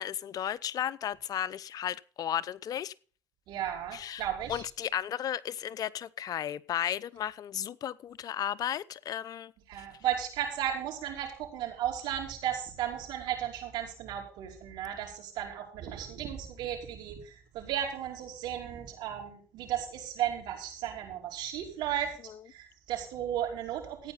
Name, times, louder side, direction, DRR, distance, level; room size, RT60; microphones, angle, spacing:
voice 1, 0.0-2.9 3.9-9.5 9.8-9.9 22.3-22.4, left 10 dB, 55° left, 0.7 m, -34 dB
voice 2, 3.5-4.6 9.7-22.2 22.5-24.1, right 10 dB, 75° right, 4.9 m, -35 dB
14.5 x 9.6 x 4.0 m
supercardioid pair, 85°, 8 cm